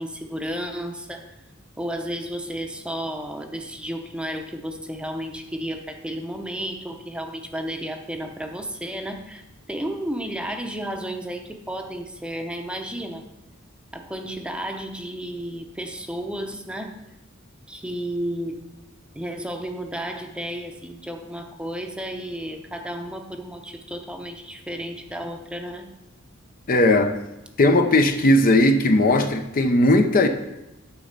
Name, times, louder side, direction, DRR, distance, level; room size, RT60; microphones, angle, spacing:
voice 1, 0.0-1.3 1.8-9.4 9.7-13.2 13.9-17.0 17.7-18.7 19.1-25.9, equal, 5° right, 4 dB, 0.7 m, -32 dB
voice 2, 26.7-27.1 27.6-30.3, left 1 dB, 45° left, 7 dB, 0.6 m, -17 dB
10.0 x 3.9 x 6.6 m, 0.95 s
head